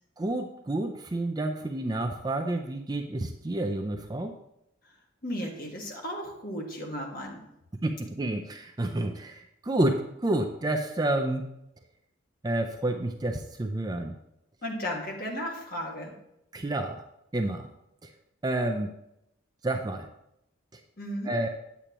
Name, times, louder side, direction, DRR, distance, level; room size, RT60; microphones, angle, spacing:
voice 1, 0.2-4.3 7.8-11.4 12.4-14.2 16.5-17.0 17.3-17.7 18.0-18.1 18.4-18.9 19.6-20.1 20.7-20.8 21.3-21.5, right 1 dB, 20° right, 5 dB, 0.4 m, -29 dB
voice 2, 5.2-7.4 14.6-16.1 21.0-21.3, equal, 45° left, 0 dB, 1.5 m, -35 dB
8.7 x 8.3 x 3.0 m, 0.83 s
head